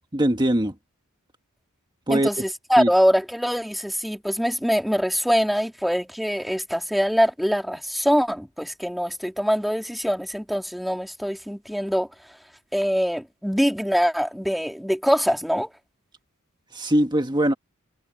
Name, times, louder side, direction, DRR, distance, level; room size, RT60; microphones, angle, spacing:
voice 1, 0.1-0.7 2.1-2.3 2.8-2.9 16.7-17.5, right 1 dB, 20° right, 1.8 m, -21 dB
voice 2, 2.1-12.1 12.7-15.7, equal, ahead, 3.4 m, -23 dB
head